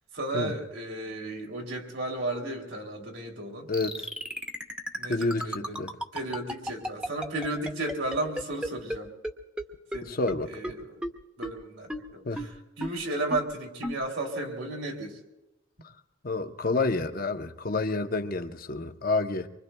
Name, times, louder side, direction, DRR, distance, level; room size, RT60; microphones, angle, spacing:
voice 1, 0.1-3.7 5.0-5.9 6.1-9.1 9.9-10.2 10.5-11.1 11.4-15.2, right 2 dB, 60° right, 2.8 m, -34 dB
voice 2, 3.7-4.1 5.1-5.9 10.0-10.5 12.3-12.4 16.2-19.5, left 3 dB, 45° left, 0.7 m, -29 dB
sound 1, 3.7-9.0 9.2-9.3 9.6-9.7 9.9-10.0 10.3-10.4 10.6-10.7 11.0-11.1 11.4-11.5 11.9-12.0 12.4-12.5 12.8-12.9 13.3-13.4 13.8-13.9, equal, 5° right, 0.9 m, -32 dB
25.5 x 24.0 x 2.2 m
head